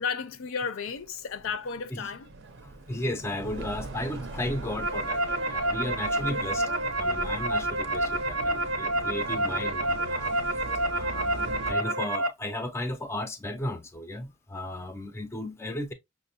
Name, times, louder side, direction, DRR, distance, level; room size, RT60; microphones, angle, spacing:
voice 1, 0.0-2.3, left 6 dB, 70° left, 0.5 m, -33 dB
sound 1, 0.9-11.7, right 3 dB, 60° right, 0.6 m, -41 dB
voice 2, 2.6-6.7 7.0-10.3 10.9-15.9, left 1 dB, 10° left, 0.4 m, -35 dB
sound 2, 4.4-12.3, right 1 dB, 90° right, 0.8 m, -29 dB
5.8 x 2.1 x 2.6 m
head